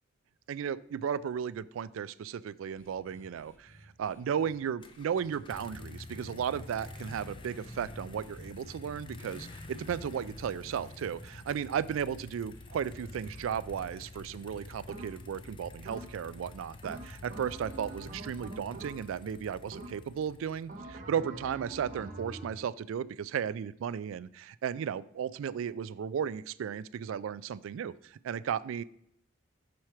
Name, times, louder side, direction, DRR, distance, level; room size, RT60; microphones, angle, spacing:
voice 1, 0.5-28.8, right 8 dB, 75° right, 18 dB, 0.3 m, -35 dB
sound 1, 2.8-5.4 5.7-6.3 6.7-7.3 7.8-8.4 9.1-9.7 10.8-11.3 12.5-18.3, equal, 75° left, 1.8 m, -59 dB
sound 2, 4.8-20.8, left 2 dB, 25° left, 0.4 m, -48 dB
sound 3, 14.9-15.4 15.8-16.4 16.8-19.3 19.7-20.2 20.7-22.6, right 2 dB, 40° right, 0.9 m, -44 dB
6.3 x 4.4 x 5.7 m, 0.71 s
head